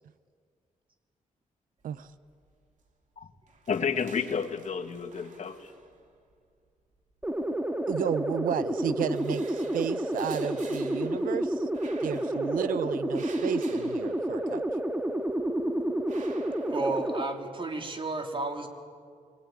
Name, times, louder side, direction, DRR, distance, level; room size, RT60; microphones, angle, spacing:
sound 1, 1.9-2.4 2.7-2.9 3.2-6.3 7.2-8.2 8.6-14.9 15.3-17.2, right 4 dB, 65° right, 3.3 m, -51 dB
voice 1, 3.7-5.6, left 6 dB, 60° left, 7 dB, 1.8 m, -30 dB
sound 2, 7.2-17.2, right 1 dB, 10° right, 1.9 m, -30 dB
voice 2, 7.9-11.7 12.0-14.6, right 9 dB, 85° right, 15 dB, 0.7 m, -33 dB
voice 3, 16.7-18.7, right 3 dB, 40° right, 3 dB, 3.4 m, -32 dB
24.5 x 21.5 x 9.4 m, 2.2 s
cardioid pair, 70°, 14 cm